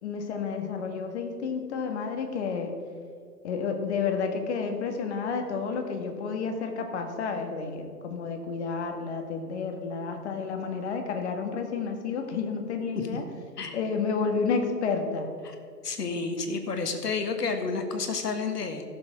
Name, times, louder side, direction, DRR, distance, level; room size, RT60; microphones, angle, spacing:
voice 1, 0.0-2.7 3.4-13.2 13.7-15.3, left 5 dB, 45° left, 5 dB, 1.6 m, -30 dB
voice 2, 15.8-18.8, left 4 dB, 70° left, 6 dB, 1.7 m, -30 dB
15.0 x 7.0 x 4.8 m, 2.2 s
figure-of-eight pair, 120°, 49 cm